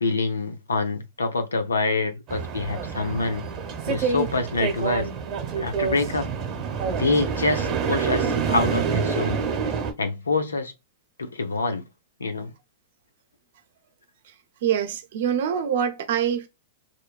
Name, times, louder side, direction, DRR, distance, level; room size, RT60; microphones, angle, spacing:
voice 1, 0.0-3.5 3.9-5.1 5.6-6.3 7.0-9.4 10.0-10.7 11.2-11.8 12.2-12.5, left 3 dB, 90° left, 0.6 m, -26 dB
sound 1, 2.3-9.9, right 6 dB, 35° right, 1.0 m, -27 dB
voice 2, 14.6-16.5, right 9 dB, 65° right, 0.6 m, -24 dB
2.9 x 2.2 x 2.3 m
hypercardioid pair, 115°, 0 cm